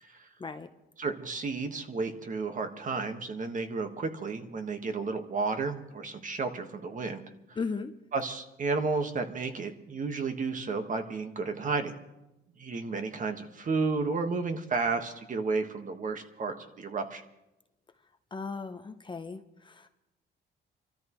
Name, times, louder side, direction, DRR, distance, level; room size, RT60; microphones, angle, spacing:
voice 1, 0.4-0.7 7.6-7.9 18.3-19.9, left 4 dB, 25° left, 7 dB, 0.7 m, -36 dB
voice 2, 1.0-7.2 7.5-7.6 8.1-11.9 12.6-17.2, right 4 dB, 40° right, 6 dB, 1.5 m, -32 dB
28.0 x 13.5 x 3.1 m, 0.94 s
cardioid pair, 115°, 20 cm